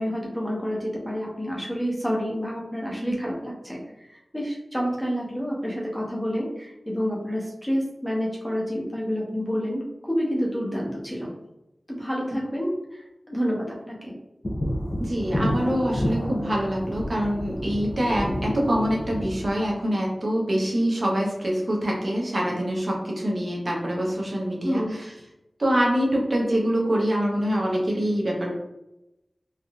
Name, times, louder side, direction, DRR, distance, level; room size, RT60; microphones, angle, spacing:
voice 1, 0.0-11.3 11.9-14.1 24.6-25.0, equal, 5° left, -4 dB, 0.9 m, -29 dB
sound 1, 14.4-19.5, equal, 40° left, 0.5 m, -29 dB
voice 2, 15.0-25.1 25.6-28.5, equal, 60° right, -3 dB, 0.8 m, -25 dB
3.4 x 2.6 x 2.3 m, 0.91 s
wide cardioid pair, 55°, 0 cm